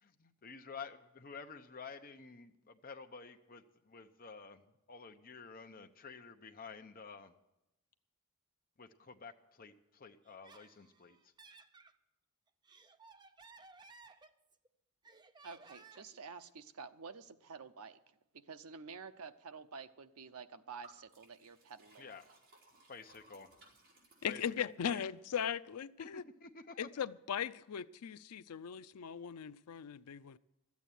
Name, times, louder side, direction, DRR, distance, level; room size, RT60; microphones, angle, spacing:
voice 1, 0.0-4.6 4.9-7.3 8.8-11.2 22.0-22.2 22.9-23.5 24.3-25.0 26.0-26.9, left 5 dB, 40° left, 0.9 m, -51 dB
Laughter, 10.2-11.9 12.5-14.7 15.0-16.2, right 4 dB, 20° right, 0.6 m, -59 dB
voice 2, 15.4-18.0 18.3-22.1, right 5 dB, 75° right, 0.7 m, -50 dB
Liquid, 20.8-25.0, right 2 dB, 55° right, 4.7 m, -63 dB
voice 3, 24.2-26.2 26.8-30.4, left 8 dB, 90° left, 0.5 m, -39 dB
13.0 x 8.4 x 9.2 m
head